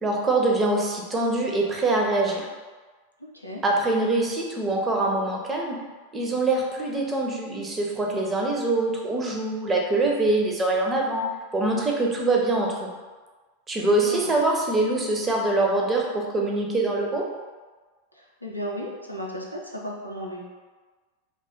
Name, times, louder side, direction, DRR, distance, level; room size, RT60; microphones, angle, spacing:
voice 1, 0.0-2.5 3.6-5.8 6.1-12.9 13.7-17.2, right 2 dB, 15° right, 0 dB, 0.5 m, -24 dB
voice 2, 3.2-3.6 13.7-14.3 18.1-20.4, equal, 90° left, -2 dB, 0.5 m, -35 dB
2.4 x 2.3 x 3.5 m, 1.3 s
figure-of-eight pair, 90°, 0 cm